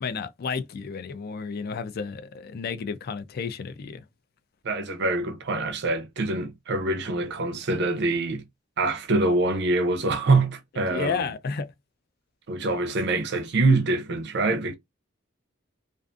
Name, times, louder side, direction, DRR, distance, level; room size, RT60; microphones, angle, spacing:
voice 1, 0.0-4.0 10.9-11.7, left 5 dB, 50° left, 0.4 m, -32 dB
voice 2, 4.6-8.4 8.8-11.3 12.5-14.7, right 2 dB, 60° right, 0.5 m, -25 dB
2.4 x 2.4 x 2.4 m
head